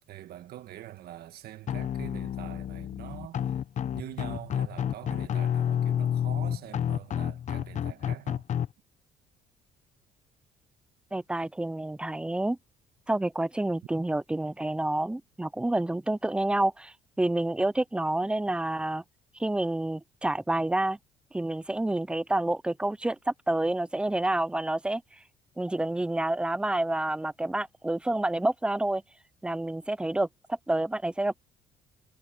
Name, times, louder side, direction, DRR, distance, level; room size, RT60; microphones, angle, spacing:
voice 1, 0.1-3.6 3.9-8.5, right 13 dB, 70° right, 1.7 m, -44 dB
sound 1, 1.7-8.7, left 9 dB, 45° left, 0.8 m, -30 dB
voice 2, 11.1-12.6 13.1-19.0 19.4-21.0 21.3-25.0 25.6-29.0 29.4-31.4, right 1 dB, 5° right, 0.6 m, -28 dB
cardioid pair, 110°, 17 cm